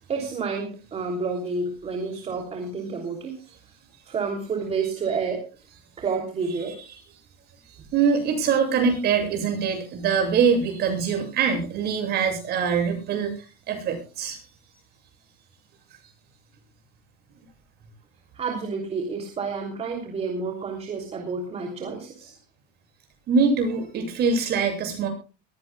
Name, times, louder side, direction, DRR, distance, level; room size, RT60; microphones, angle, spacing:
voice 1, 0.1-3.4 4.1-5.5 6.0-6.8 18.3-22.3, right 4 dB, 30° right, 2 dB, 3.1 m, -29 dB
voice 2, 7.9-13.3 13.7-14.4 23.3-25.1, right 6 dB, 50° right, 3 dB, 7.9 m, -23 dB
22.5 x 16.0 x 2.3 m, 0.34 s
supercardioid pair, 120°, 21 cm